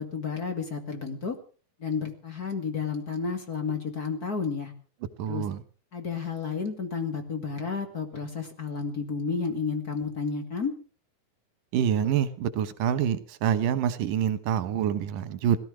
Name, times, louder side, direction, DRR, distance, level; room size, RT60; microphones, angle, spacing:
voice 1, 0.0-1.4 1.8-4.7 5.2-5.4 5.9-10.7, left 5 dB, 30° left, 6 dB, 2.3 m, -31 dB
voice 2, 5.2-5.6 11.7-15.6, right 9 dB, 90° right, 13 dB, 2.8 m, -26 dB
18.0 x 12.5 x 6.3 m, 0.40 s
omnidirectional pair, 3.6 m